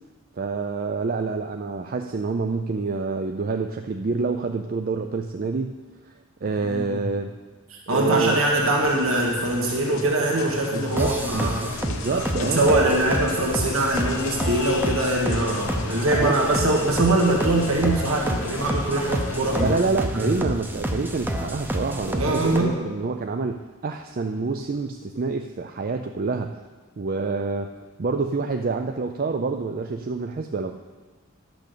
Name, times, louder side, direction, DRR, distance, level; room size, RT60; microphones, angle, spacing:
voice 1, 0.4-5.7 6.4-7.3 7.9-8.4 10.7-13.1 16.1-16.4 19.6-26.6 27.0-27.7 28.0-30.8, right 4 dB, 45° right, 5 dB, 0.4 m, -27 dB
voice 2, 7.7-11.6 12.1-19.8 20.1-20.3 22.2-22.8, right 1 dB, 75° right, -1 dB, 1.7 m, -23 dB
sound 1, 8.1-19.9, left 4 dB, 70° left, 0.8 m, -35 dB
sound 2, 11.0-22.6, right 1 dB, 10° right, 0.7 m, -29 dB
12.0 x 6.1 x 6.7 m, 1.3 s
head